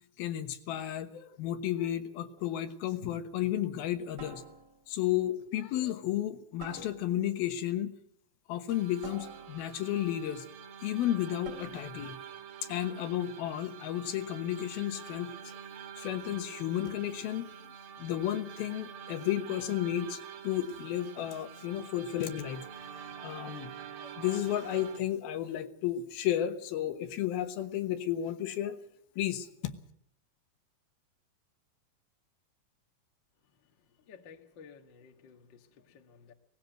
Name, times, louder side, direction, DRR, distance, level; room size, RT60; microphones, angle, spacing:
voice 1, 0.2-4.4 4.9-8.0 8.5-10.5 10.8-12.2 12.7-15.6 16.0-17.7 18.0-22.7 23.2-23.7 24.0-28.8 29.2-29.7, left 12 dB, 80° left, 9 dB, 3.1 m, -33 dB
sound 1, 2.4-2.7 4.2-5.0 6.6-7.4 9.0-10.0 11.4-12.0, right 6 dB, 40° right, 4.6 m, -49 dB
sound 2, 8.7-25.0, right 8 dB, 75° right, 3.2 m, -47 dB
voice 2, 34.1-36.3, left 6 dB, 50° left, 6 dB, 1.3 m, -54 dB
18.5 x 16.0 x 9.1 m, 0.68 s
omnidirectional pair, 4.3 m